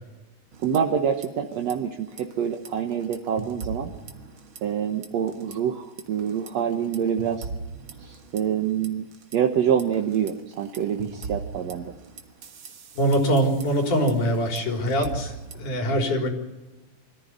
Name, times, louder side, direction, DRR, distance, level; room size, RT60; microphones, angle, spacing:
sound 1, 0.5-1.3 1.5-1.7 2.1-4.8 5.0-5.6 6.0-9.4 9.8-15.8, right 4 dB, 50° right, 2.0 m, -39 dB
voice 1, 0.6-3.9 4.6-7.5 8.0-9.1 9.3-11.9, right 8 dB, 65° right, 3 dB, 2.3 m, -26 dB
voice 2, 13.0-16.3, equal, 80° left, 2 dB, 5.4 m, -23 dB
25.5 x 14.5 x 9.5 m, 1.1 s
omnidirectional pair, 3.5 m